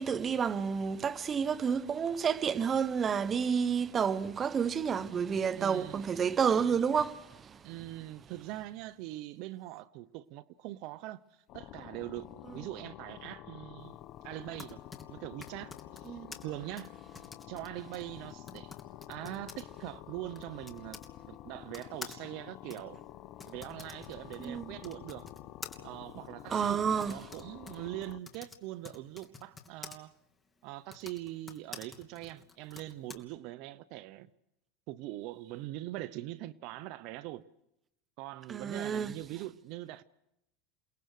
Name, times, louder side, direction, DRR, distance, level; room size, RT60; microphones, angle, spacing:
voice 1, 0.0-7.6 16.1-16.3 24.4-24.8 26.5-27.2 38.5-39.1, right 7 dB, 30° right, 1.1 m, -30 dB
voice 2, 5.6-6.0 7.6-14.0 14.2-14.8 15.1-16.9 17.5-18.8 19.1-21.0 21.3-23.0 23.4-25.3 25.8-30.1 30.6-34.3 34.9-37.4 38.2-40.0, right 16 dB, 60° right, 0.8 m, -42 dB
sound 1, 11.5-28.2, left 13 dB, 50° left, 1.0 m, -49 dB
Typing, 14.3-21.1 21.7-30.0 30.8-33.2, left 4 dB, 15° left, 2.7 m, -50 dB
29.0 x 19.5 x 6.6 m
hypercardioid pair, 105°, 0 cm